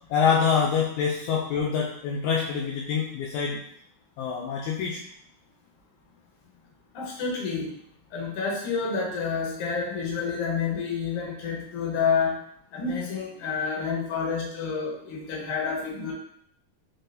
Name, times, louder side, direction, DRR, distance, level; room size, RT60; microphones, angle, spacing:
voice 1, 0.1-3.6 4.2-5.0, left 6 dB, 85° left, -2 dB, 1.6 m, -25 dB
voice 2, 6.9-7.7 8.1-12.4 12.7-16.1, left 5 dB, 65° left, -2 dB, 1.6 m, -29 dB
4.8 x 3.7 x 2.6 m, 0.66 s
omnidirectional pair, 3.8 m